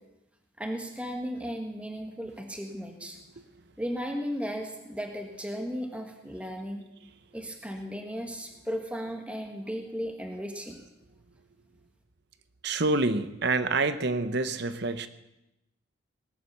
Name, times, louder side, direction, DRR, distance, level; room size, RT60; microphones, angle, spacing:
voice 1, 0.6-3.2 3.8-6.8 7.3-10.8, equal, 5° right, 3 dB, 1.6 m, -35 dB
voice 2, 12.6-15.1, right 3 dB, 55° right, 11 dB, 1.0 m, -27 dB
19.0 x 10.0 x 6.7 m, 0.92 s
head